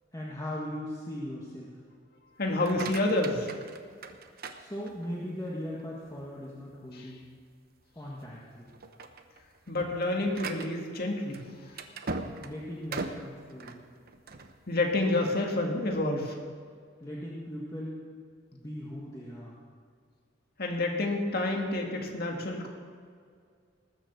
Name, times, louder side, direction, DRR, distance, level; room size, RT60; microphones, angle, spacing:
voice 1, 0.1-1.8 4.6-7.3 8.0-8.7 12.4-13.8 17.0-18.0 18.5-19.6, equal, 20° left, -6 dB, 1.7 m, -39 dB
voice 2, 2.4-3.5 6.9-7.1 9.7-11.4 14.7-16.4 20.6-22.7, left 2 dB, 55° left, 1 dB, 2.0 m, -29 dB
sound 1, 2.5-5.3 5.8-6.2 6.7-6.8 7.2-7.4 8.1-8.3 8.7-14.5, right 3 dB, 55° right, 1.0 m, -40 dB
19.5 x 7.2 x 7.0 m, 2.1 s
head